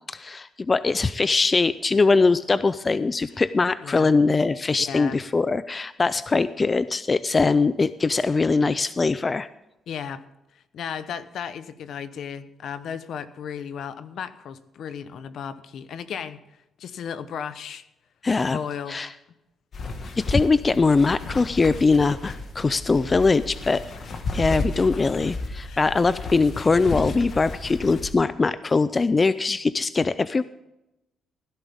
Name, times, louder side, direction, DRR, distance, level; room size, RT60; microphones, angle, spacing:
voice 1, 0.1-9.5 18.2-18.6 18.9-19.1 20.2-23.8 24.3-30.4, left 4 dB, 25° left, 15 dB, 0.4 m, -22 dB
voice 2, 4.9-5.2 9.9-10.2 10.7-16.4 16.8-17.8 18.4-19.0 25.6-25.9, left 7 dB, 65° left, 13 dB, 0.9 m, -35 dB
sound 1, 19.7-28.1, left 3 dB, 50° left, 1.7 m, -33 dB
16.5 x 11.0 x 3.6 m, 0.93 s
cardioid pair, 105°, 0 cm